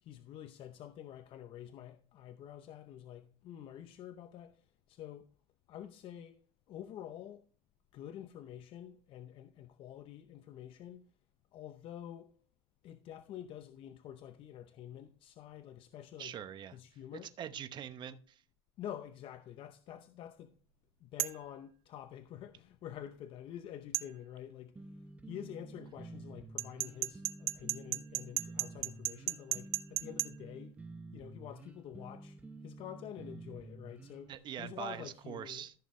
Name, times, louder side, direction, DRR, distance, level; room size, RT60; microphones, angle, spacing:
voice 1, 0.0-5.3 5.7-6.4 6.7-7.4 7.9-11.1 11.5-12.4 12.8-16.4 16.7-17.4 18.8-20.6 21.0-24.8 25.3-30.7 31.1-32.4 32.6-35.7, left 10 dB, 45° left, 0.7 m, -48 dB
voice 2, 16.2-16.8 17.4-18.4 34.3-35.7, right 9 dB, 35° right, 0.9 m, -43 dB
sound 1, 21.2-21.4 23.9-24.1 26.6-30.3, right 18 dB, 80° right, 0.6 m, -34 dB
sound 2, 24.8-34.4, right 3 dB, 10° right, 0.7 m, -50 dB
14.0 x 6.4 x 3.2 m
supercardioid pair, 115°, 13 cm